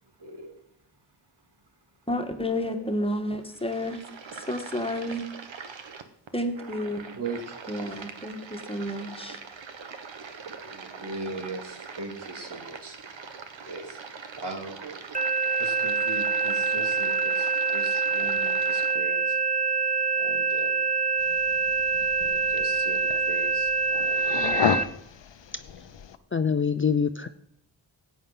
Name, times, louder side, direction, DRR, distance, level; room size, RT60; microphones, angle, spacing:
voice 1, 0.2-0.6 2.6-2.8 7.2-7.6 10.6-13.4 13.6-14.8 15.6-19.4 20.2-20.8 22.2-23.7 24.0-24.7 25.3-25.4, right 3 dB, 65° right, 3 dB, 2.6 m, -39 dB
voice 2, 2.1-4.0 4.3-5.2 6.3-7.0 7.7-9.4, left 1 dB, 10° left, 5 dB, 1.6 m, -31 dB
sound 1, 3.4-19.0, right 5 dB, 85° right, 1.2 m, -42 dB
sound 2, 15.1-24.8, right 4 dB, 20° right, 0.8 m, -25 dB
sound 3, 21.2-26.2, left 8 dB, 70° left, 0.9 m, -33 dB
voice 3, 26.3-27.3, left 6 dB, 30° left, 11 dB, 0.5 m, -24 dB
15.0 x 8.7 x 5.6 m, 0.75 s
wide cardioid pair, 70°, 45 cm